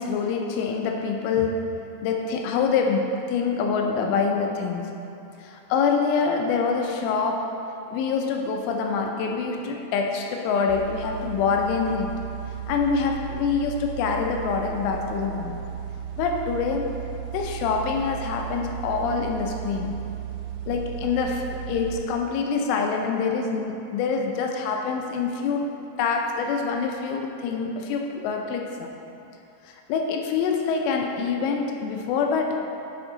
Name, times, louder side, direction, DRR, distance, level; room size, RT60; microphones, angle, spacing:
voice 1, 0.0-4.9 5.4-7.6 7.9-12.2 12.7-15.6 16.2-17.0 17.3-20.1 20.7-28.9 29.6-32.8, left 5 dB, 85° left, 2 dB, 2.9 m, -26 dB
sound 1, 10.7-22.0, right 9 dB, 85° right, 3.1 m, -35 dB
8.6 x 5.2 x 3.9 m, 2.8 s
omnidirectional pair, 5.7 m